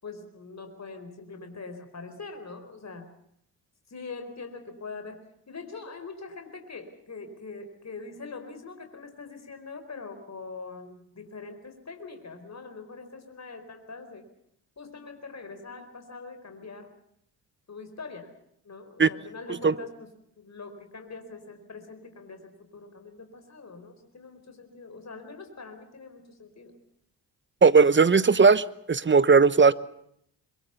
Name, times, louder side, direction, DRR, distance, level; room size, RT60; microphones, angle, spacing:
voice 1, 0.0-3.1 3.9-5.2 5.5-14.2 14.8-16.9 17.7-18.3 18.6-20.1 20.4-26.7, left 4 dB, 35° left, 4.6 m, -43 dB
voice 2, 27.6-29.7, right 5 dB, 25° right, 1.0 m, -18 dB
23.0 x 22.0 x 7.1 m
hypercardioid pair, 50°, 47 cm